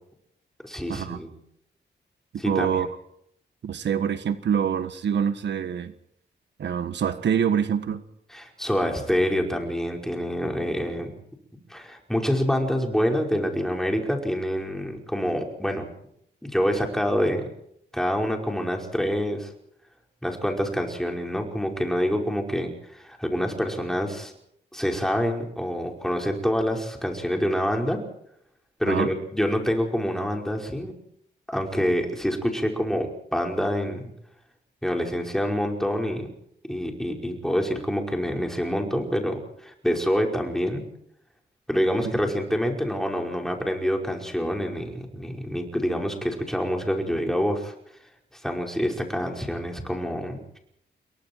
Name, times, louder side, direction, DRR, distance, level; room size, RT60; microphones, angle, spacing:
voice 1, 0.6-1.3 2.4-2.8 8.3-11.2 11.7-15.9 16.4-17.5 17.9-19.5 20.2-24.3 24.7-28.0 28.8-30.9 31.5-34.1 34.8-36.3 36.7-40.8 41.7-47.7 48.3-50.6, equal, ahead, 2 dB, 5.2 m, -26 dB
voice 2, 2.4-2.9 3.6-5.9 6.6-8.0 28.9-29.1, right 8 dB, 70° right, 10 dB, 1.6 m, -25 dB
28.0 x 23.0 x 4.7 m, 0.72 s
wide cardioid pair, 130°, 19 cm